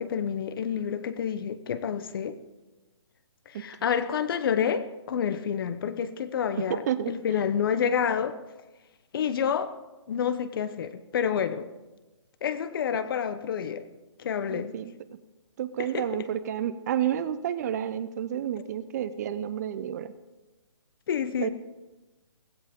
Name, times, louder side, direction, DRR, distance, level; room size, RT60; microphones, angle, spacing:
voice 1, 0.0-2.4 3.5-8.4 9.1-9.7 10.1-11.7 12.4-13.8 14.2-14.7 15.8-16.3 21.1-21.5, left 8 dB, 45° left, 12 dB, 1.0 m, -29 dB
voice 2, 6.7-7.1 14.5-14.9 15.6-20.1 21.4-21.5, right 10 dB, 35° right, 13 dB, 0.7 m, -30 dB
17.0 x 15.5 x 3.7 m, 1.1 s
hypercardioid pair, 150°, 16 cm